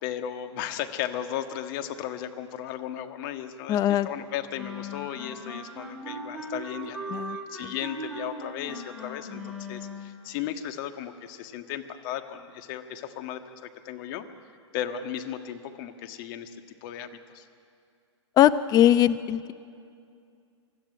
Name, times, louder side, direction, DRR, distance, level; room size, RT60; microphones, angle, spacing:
voice 1, 0.0-14.3 14.7-16.5 16.8-17.5, left 10 dB, 45° left, 7 dB, 1.6 m, -35 dB
voice 2, 3.7-4.1 7.1-7.7 18.4-19.5, left 11 dB, 25° left, 14 dB, 0.7 m, -21 dB
sound 1, 4.6-10.2, equal, ahead, 4.5 m, -38 dB
25.5 x 13.0 x 9.9 m, 2.4 s
hypercardioid pair, 130°, 15 cm